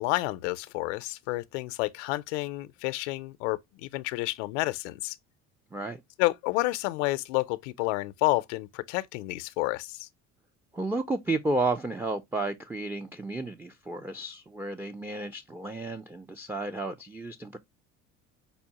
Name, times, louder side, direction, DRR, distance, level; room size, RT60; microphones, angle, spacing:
voice 1, 0.0-5.2 6.2-10.1, left 21 dB, 85° left, 0.5 m, -30 dB
voice 2, 10.7-17.6, right 2 dB, 5° right, 0.3 m, -32 dB
5.3 x 2.1 x 2.8 m
supercardioid pair, 75°, 35 cm